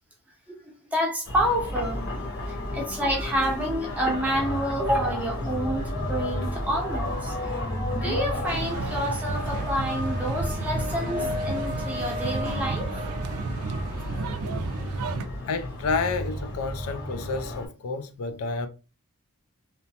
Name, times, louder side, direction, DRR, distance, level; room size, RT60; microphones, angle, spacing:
voice 1, 0.9-7.6 8.0-13.1 15.2-15.3, equal, 5° right, 0.6 m, -29 dB
sound 1, 1.2-17.7, left 1 dB, 55° left, 1.0 m, -31 dB
sound 2, 8.5-15.3, right 5 dB, 80° right, 0.3 m, -34 dB
voice 2, 15.5-18.7, left 4 dB, 75° left, 0.4 m, -30 dB
2.9 x 2.1 x 2.7 m
head